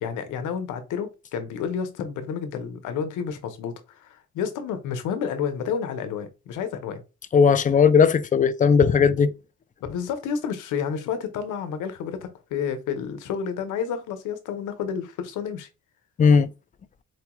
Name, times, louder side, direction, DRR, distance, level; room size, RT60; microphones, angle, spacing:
voice 1, 0.0-7.0 9.9-15.7, left 7 dB, 90° left, 0.9 m, -30 dB
voice 2, 7.3-9.3 16.2-16.5, left 6 dB, 25° left, 0.4 m, -17 dB
4.6 x 2.2 x 3.0 m
cardioid pair, 90°, 30 cm